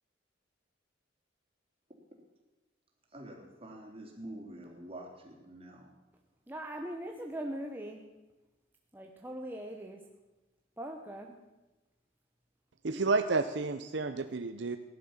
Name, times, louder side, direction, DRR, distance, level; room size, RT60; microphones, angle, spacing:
voice 1, 3.1-5.9 12.9-13.1, right 1 dB, 30° right, 0 dB, 3.4 m, -47 dB
voice 2, 6.5-8.1 8.9-10.0 10.8-11.4, right 1 dB, 10° right, 1 dB, 1.0 m, -40 dB
voice 3, 12.8-14.8, right 3 dB, 65° right, 9 dB, 0.7 m, -30 dB
17.5 x 11.5 x 7.3 m, 1.1 s
head